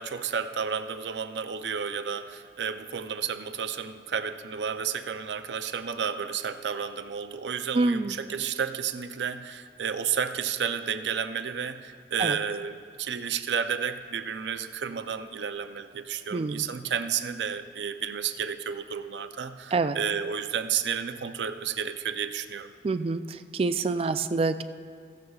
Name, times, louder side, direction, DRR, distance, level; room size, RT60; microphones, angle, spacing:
voice 1, 0.0-22.7, right 7 dB, 85° right, 9 dB, 0.5 m, -31 dB
voice 2, 7.7-8.1 12.2-12.4 16.3-16.7 19.7-20.0 22.8-24.6, right 3 dB, 35° right, 10 dB, 0.3 m, -27 dB
15.5 x 13.0 x 2.4 m, 2.1 s
head